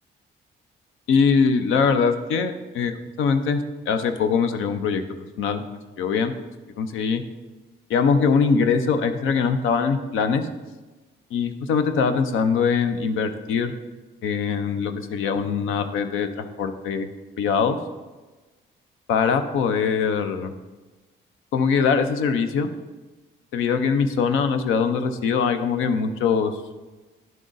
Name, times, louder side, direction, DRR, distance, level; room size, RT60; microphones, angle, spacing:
voice 1, 1.1-2.9 3.2-5.0 5.4-5.6 6.0-6.3 6.8-7.2 7.9-10.4 11.3-13.7 14.2-17.1 17.4-17.8 19.1-20.5 21.5-22.7 23.5-26.6, left 5 dB, 85° left, 9 dB, 0.7 m, -22 dB
10.5 x 3.8 x 3.9 m, 1.2 s
cardioid pair, 90°, 20 cm